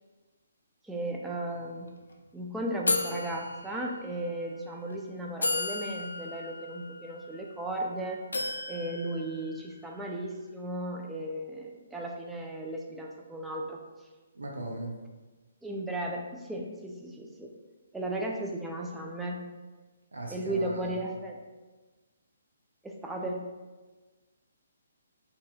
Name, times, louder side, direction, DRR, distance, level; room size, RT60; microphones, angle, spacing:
voice 1, 0.8-1.9 2.3-8.2 8.7-13.8 15.6-17.5 17.9-19.5 20.3-21.4 22.8-23.5, right 1 dB, 5° right, -1 dB, 0.3 m, -35 dB
sound 1, 1.5-1.6 1.9-2.1 2.9-4.3 4.9-5.0 5.4-7.8 8.3-10.0, left 2 dB, 85° left, 0.3 m, -34 dB
voice 2, 14.3-14.9 20.1-21.0, right 1 dB, 80° right, 0 dB, 0.5 m, -38 dB
2.7 x 2.6 x 2.3 m, 1.3 s
figure-of-eight pair, 140°, 0 cm